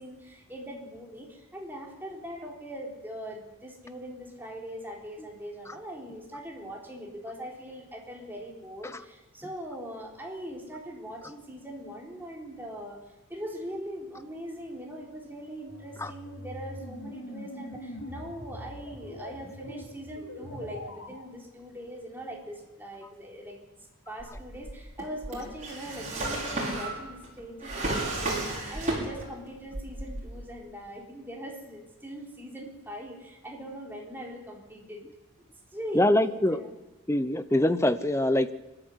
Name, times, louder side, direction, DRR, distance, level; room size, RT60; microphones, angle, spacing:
voice 1, 0.0-13.0 13.3-23.6 24.1-35.0 35.4-35.5 35.7-36.7, equal, 10° right, -2 dB, 4.0 m, -41 dB
sound 1, 15.7-21.2, left 1 dB, 75° left, 4.1 m, -42 dB
Drawer open or close, 24.2-29.4 29.7-30.5, right 2 dB, 35° right, 6.5 m, -33 dB
voice 2, 35.9-36.6 37.1-38.5, left 1 dB, 10° left, 12 dB, 0.7 m, -24 dB
26.0 x 13.0 x 8.2 m, 1.1 s
head